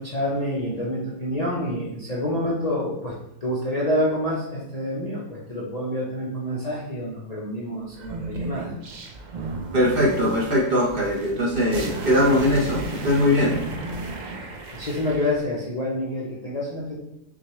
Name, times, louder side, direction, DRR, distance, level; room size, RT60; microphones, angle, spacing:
voice 1, 0.0-8.7 14.4-17.0, left 1 dB, 40° left, -6 dB, 0.6 m, -28 dB
sound 1, 7.9-15.3, right 2 dB, 75° right, 0.4 m, -34 dB
voice 2, 9.7-13.6, left 1 dB, 45° right, -3 dB, 0.9 m, -21 dB
6.0 x 2.3 x 3.0 m, 0.83 s
omnidirectional pair, 1.4 m